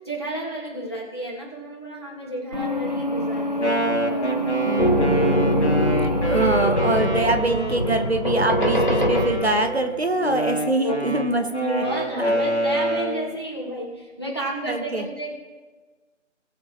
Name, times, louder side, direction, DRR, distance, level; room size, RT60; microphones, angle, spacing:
voice 1, 0.0-4.3 10.8-11.5 11.8-15.3, right 1 dB, 20° left, -4 dB, 1.4 m, -32 dB
sound 1, 2.5-8.9, equal, 30° right, 1.3 m, -29 dB
Wind instrument woodwind instrument, 3.4-8.1 8.6-13.3, right 1 dB, 60° left, 1.8 m, -27 dB
voice 2, 4.7-5.4 6.3-11.8 12.2-12.3 14.6-15.0, right 2 dB, 55° right, 6 dB, 1.0 m, -24 dB
sound 2, 4.8-9.8, equal, 40° left, 0.8 m, -23 dB
19.5 x 6.6 x 2.9 m, 1.3 s
figure-of-eight pair, 170°, 38 cm